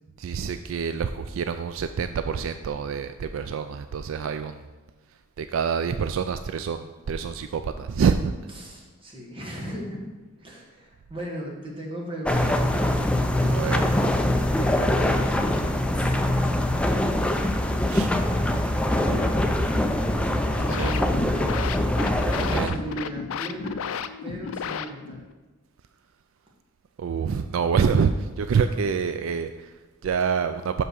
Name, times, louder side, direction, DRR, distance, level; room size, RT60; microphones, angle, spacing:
voice 1, 0.2-4.6 5.4-8.3 13.5-13.8 17.9-18.1 20.7-21.0 22.5-22.8 27.0-30.8, right 6 dB, 70° right, 9 dB, 0.3 m, -26 dB
voice 2, 8.6-10.1 10.4-13.6 14.5-15.4 15.9-17.0 18.7-20.3 20.6-21.5 22.2-23.8 24.2-25.2, right 1 dB, 25° right, -2 dB, 1.7 m, -37 dB
sound 1, 12.2-22.7, left 1 dB, 5° left, 0.5 m, -23 dB
sound 2, 20.4-25.3, left 7 dB, 80° left, 0.4 m, -33 dB
6.0 x 5.6 x 6.4 m, 1.2 s
head